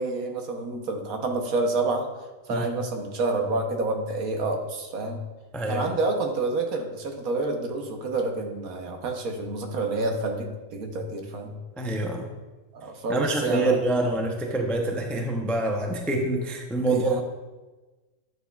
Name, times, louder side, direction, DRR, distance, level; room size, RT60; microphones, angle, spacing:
voice 1, 0.0-2.1 2.5-5.2 5.7-11.5 12.7-13.8 16.9-17.2, right 2 dB, 75° right, 3 dB, 1.4 m, -28 dB
voice 2, 5.5-5.8 11.8-12.3 13.1-17.2, right 2 dB, ahead, 1 dB, 0.3 m, -26 dB
10.5 x 6.7 x 2.4 m, 1.2 s
omnidirectional pair, 1.5 m